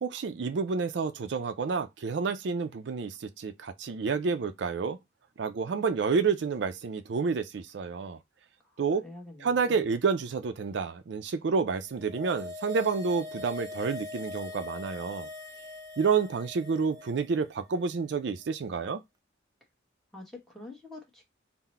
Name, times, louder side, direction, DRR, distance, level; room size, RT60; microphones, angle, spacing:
voice 1, 0.0-5.0 5.4-8.2 8.8-9.0 9.4-15.3 16.0-19.0, right 5 dB, 70° right, 0.4 m, -29 dB
voice 2, 9.0-9.8 20.1-21.2, left 2 dB, ahead, 1.1 m, -46 dB
sound 1, 11.8-17.3 17.6-17.7, left 2 dB, 20° right, 0.5 m, -41 dB
3.8 x 2.1 x 4.2 m
head